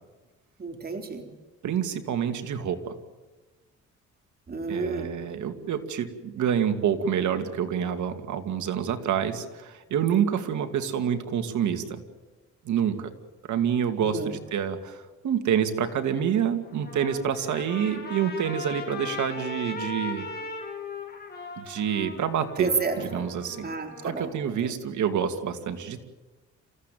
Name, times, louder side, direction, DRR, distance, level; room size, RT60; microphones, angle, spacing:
voice 1, 0.6-1.3 4.5-5.1 14.0-14.4 22.6-23.2 23.6-24.3, right 4 dB, 30° right, 4 dB, 3.8 m, -30 dB
voice 2, 1.6-2.9 4.7-12.0 12.6-13.1 13.5-20.3 21.6-22.7 23.0-23.7 24.0-26.0, right 8 dB, 75° right, 7 dB, 2.5 m, -27 dB
Trumpet, 16.7-24.1, left 4 dB, 30° left, 6.8 m, -39 dB
27.5 x 15.5 x 9.3 m, 1.3 s
cardioid pair, 90°, 30 cm